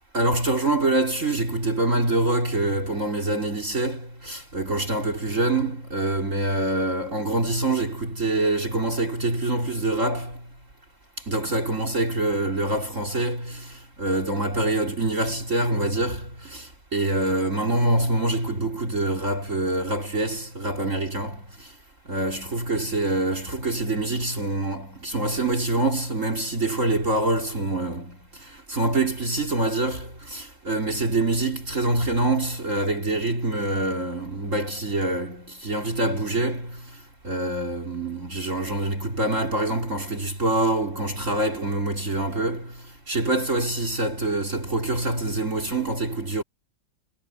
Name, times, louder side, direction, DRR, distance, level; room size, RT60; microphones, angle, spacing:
voice 1, 0.1-10.4 11.3-21.7 22.1-37.0 37.2-46.4, right 2 dB, 45° right, 3.6 m, -25 dB
omnidirectional pair, 1.9 m